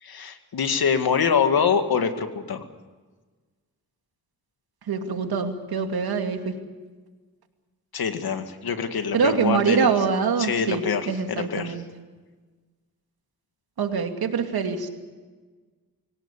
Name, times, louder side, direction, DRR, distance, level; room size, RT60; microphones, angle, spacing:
voice 1, 0.0-2.7 7.9-9.9 10.4-11.0 11.3-11.8, left 6 dB, 80° left, 7 dB, 2.2 m, -24 dB
voice 2, 4.9-6.5 9.1-11.8 13.8-14.9, right 5 dB, 85° right, 5 dB, 2.6 m, -24 dB
24.5 x 17.5 x 8.4 m, 1.4 s
cardioid pair, 70°, 36 cm